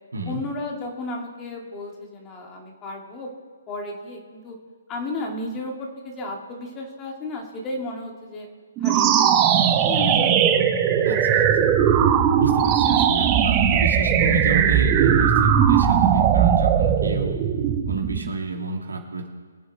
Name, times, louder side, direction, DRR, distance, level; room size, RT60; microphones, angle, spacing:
voice 1, 0.3-3.3 3.7-4.6 4.9-8.5 8.8-10.5 10.8-11.1, left 2 dB, 20° left, 0 dB, 2.1 m, -33 dB
sound 1, 8.8-18.3, right 8 dB, 25° right, 1.0 m, -19 dB
voice 2, 11.1-11.7 12.4-17.3 17.9-19.3, right 3 dB, 80° right, 1 dB, 2.3 m, -30 dB
23.5 x 7.9 x 3.3 m, 1.5 s
figure-of-eight pair, 140°, 0 cm